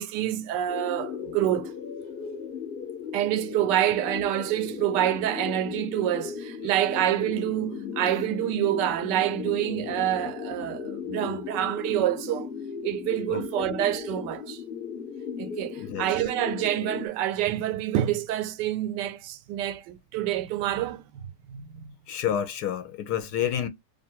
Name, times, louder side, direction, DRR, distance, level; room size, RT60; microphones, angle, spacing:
voice 1, 0.0-1.7 3.1-12.5 12.8-14.6 15.4-21.9, right 12 dB, 85° right, 1.2 m, -27 dB
sound 1, 0.7-17.1, left 6 dB, 55° left, 0.7 m, -36 dB
voice 2, 15.8-16.1 22.1-23.7, left 9 dB, 75° left, 1.2 m, -29 dB
2.9 x 2.5 x 4.3 m
omnidirectional pair, 1.8 m